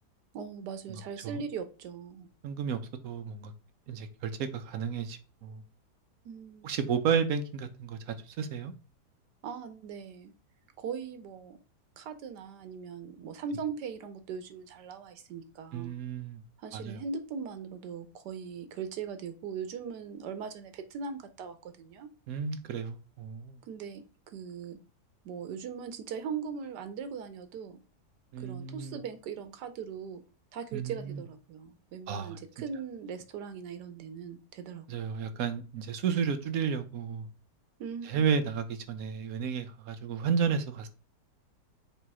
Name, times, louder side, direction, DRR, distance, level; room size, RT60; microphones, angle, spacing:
voice 1, 0.3-2.3 6.2-6.7 9.4-10.3 10.8-11.6 12.0-16.0 16.6-22.1 23.6-24.0 24.3-24.8 25.2-27.8 28.4-30.2 30.5-34.9 37.8-38.3, right 6 dB, 85° right, 1.4 m, -40 dB
voice 2, 2.4-3.5 3.9-5.6 6.6-8.7 15.7-16.4 16.7-17.0 22.3-23.6 28.3-29.0 30.7-31.2 32.1-32.4 34.9-37.3 38.0-40.9, right 6 dB, 65° right, 1.1 m, -32 dB
7.2 x 2.9 x 4.8 m
omnidirectional pair, 1.7 m